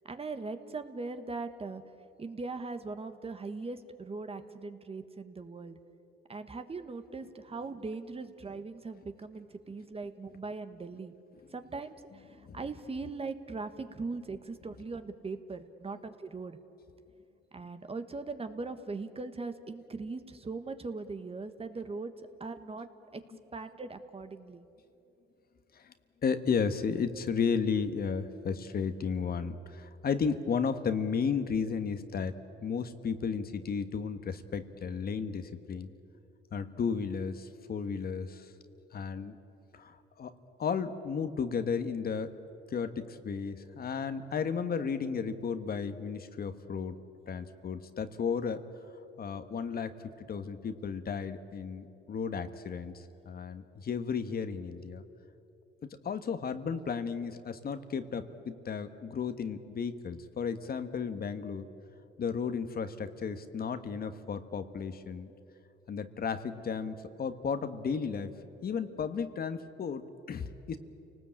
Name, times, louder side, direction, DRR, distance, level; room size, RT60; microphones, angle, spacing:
voice 1, 0.0-1.8 2.2-5.8 6.3-11.1 11.5-16.6 17.5-22.1 22.4-23.2 23.5-24.7, right 3 dB, 30° right, 9 dB, 1.4 m, -40 dB
voice 2, 26.2-32.4 32.6-35.9 36.5-38.5 38.9-39.3 39.7-40.3 40.6-42.3 42.7-46.9 47.3-48.6 49.2-49.9 50.2-55.0 56.0-61.7 62.2-65.3 65.9-68.3 68.6-70.8, left 6 dB, 50° left, 9 dB, 1.4 m, -34 dB
29.0 x 19.0 x 8.8 m, 2.9 s
cardioid pair, 90°, 20 cm